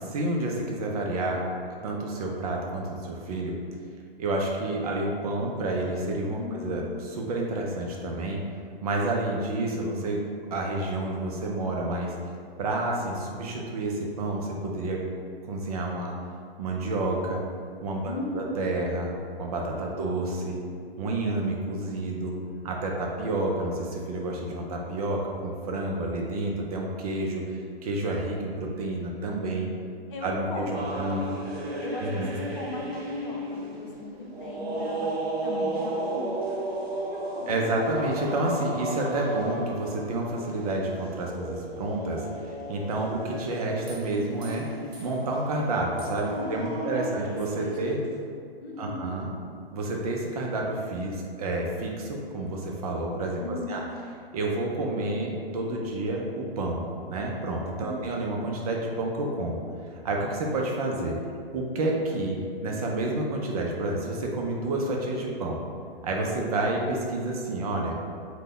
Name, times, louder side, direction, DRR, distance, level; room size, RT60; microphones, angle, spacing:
voice 1, 0.0-1.4 1.8-3.5 4.2-8.4 8.8-10.2 10.5-12.1 12.6-15.0 15.4-16.1 16.6-17.4 17.8-20.6 21.0-22.4 22.6-29.7 30.2-31.2 32.0-32.4 37.5-44.7 45.0-48.0 48.8-49.3 49.7-53.4 53.7-53.8 54.3-59.6 60.0-61.2 61.5-65.6 66.0-68.0, right 2 dB, 40° right, -1 dB, 0.4 m, -29 dB
voice 2, 6.4-6.7 18.0-18.5 19.9-20.2 30.1-31.0 31.8-33.4 33.8-35.2 35.4-36.6 37.1-37.9 46.4-47.9 48.6-49.1 53.4-53.8 57.8-58.1, left 2 dB, 60° left, -2 dB, 0.7 m, -37 dB
sound 1, 30.7-48.1, right 1 dB, 85° right, 0.7 m, -35 dB
2.7 x 2.1 x 3.7 m, 2.3 s
figure-of-eight pair, 120°, 30 cm